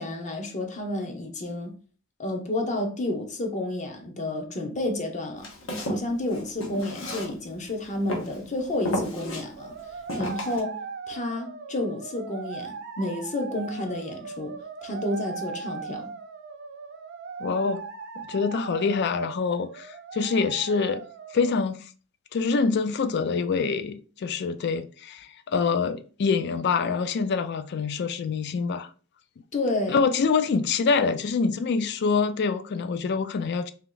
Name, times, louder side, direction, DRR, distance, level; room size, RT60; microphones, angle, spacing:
voice 1, 0.0-1.7 2.2-5.5 5.8-9.8 10.2-14.6 14.8-16.1 29.5-30.0, left 1 dB, 35° left, 0.8 m, -30 dB
Walk footsteps, 5.4-7.7 8.1-8.4 8.8-9.4 10.1-10.6, equal, 70° left, 1.0 m, -32 dB
sound 1, 9.6-21.6, right 5 dB, 55° right, 0.5 m, -39 dB
voice 2, 17.4-17.8 18.2-21.0 21.3-21.9 22.3-28.9 29.9-33.7, left 5 dB, 55° left, 0.3 m, -25 dB
2.9 x 2.9 x 3.8 m
head